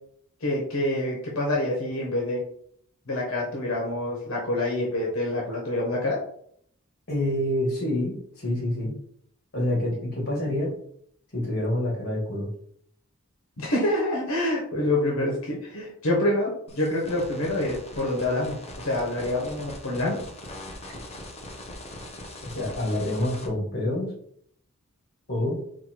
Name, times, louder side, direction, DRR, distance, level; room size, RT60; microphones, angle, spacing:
voice 1, 0.4-2.4 3.1-6.2 13.6-20.2, left 1 dB, 75° left, -2 dB, 1.1 m, -26 dB
voice 2, 7.1-8.9 9.5-10.7 11.3-12.5 22.4-24.1 25.3-25.6, left 1 dB, 50° left, -1 dB, 1.8 m, -27 dB
sound 1, 16.7-23.5, left 1 dB, 30° left, 0.8 m, -41 dB
4.3 x 2.6 x 4.4 m, 0.65 s
head